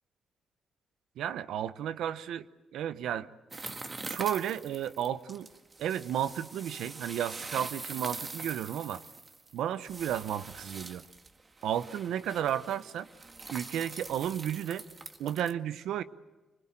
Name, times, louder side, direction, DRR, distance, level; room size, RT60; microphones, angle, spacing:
voice 1, 1.2-2.5 2.7-3.3 4.0-5.5 5.8-9.0 9.5-11.0 11.6-13.1 13.5-14.8 15.2-16.0, right 10 dB, 85° right, 13 dB, 0.9 m, -33 dB
sound 1, 3.5-15.5, right 3 dB, 35° right, 1.8 m, -44 dB
26.0 x 20.5 x 8.9 m, 1.2 s
cardioid pair, 70°, 0 cm